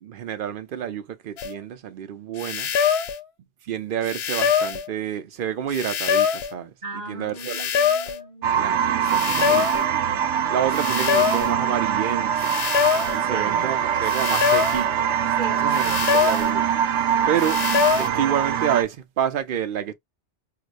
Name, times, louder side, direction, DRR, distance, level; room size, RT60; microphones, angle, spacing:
voice 1, 0.0-2.7 3.6-7.6 8.6-10.0 10.5-12.5 13.1-15.0 15.6-16.7 17.3-17.6 18.0-19.9, right 9 dB, 60° right, 0.7 m, -28 dB
sound 1, 1.4-1.5 2.4-3.2 4.0-4.9 5.7-6.5 7.4-8.2 9.0-9.9 10.7-11.5 12.4-13.2 14.0-14.9 15.7-16.5 17.4-18.1, left 8 dB, 70° left, 0.9 m, -23 dB
voice 2, 6.8-9.5 13.3-13.7 15.3-16.0, right 3 dB, 40° right, 1.6 m, -39 dB
sound 2, 8.4-18.8, right 8 dB, 90° right, 0.9 m, -23 dB
4.7 x 2.1 x 2.4 m
omnidirectional pair, 1.2 m